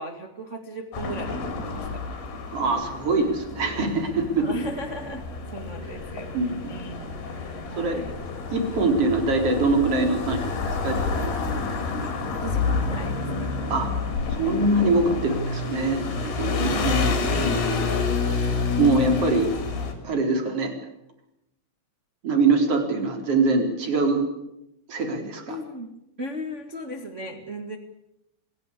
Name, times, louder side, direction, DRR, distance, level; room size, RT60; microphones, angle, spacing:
voice 1, 0.0-2.0 2.4-2.5 4.4-7.1 7.7-8.2 12.4-13.5 16.6-17.0 22.9-23.1 25.5-25.9 26.2-27.8, right 1 dB, 85° right, 3 dB, 0.6 m, -37 dB
sound 1, 0.9-19.9, left 4 dB, 60° left, 5.6 m, -29 dB
voice 2, 2.5-4.5 6.3-6.8 7.8-8.0 8.5-11.3 13.6-13.9 14.3-17.9 18.3-19.5 20.0-20.7 22.2-24.2 24.9-25.6, right 3 dB, 35° right, 4 dB, 4.4 m, -24 dB
27.0 x 17.0 x 8.5 m, 0.85 s
omnidirectional pair, 5.4 m